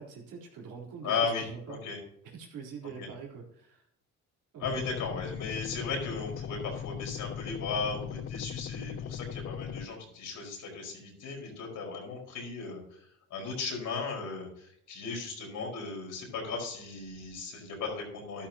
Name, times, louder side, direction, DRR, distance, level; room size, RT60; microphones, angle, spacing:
voice 1, 0.0-1.8 2.2-3.8 4.5-4.8, right 5 dB, 90° right, -1 dB, 3.8 m, -44 dB
voice 2, 1.0-2.0 3.0-3.1 4.6-13.0 13.3-18.5, left 4 dB, 80° left, 0 dB, 4.9 m, -36 dB
sound 1, 4.6-9.9, left 8 dB, 45° left, 0.6 m, -39 dB
13.0 x 12.5 x 2.9 m, 0.72 s
cardioid pair, 90°, 30 cm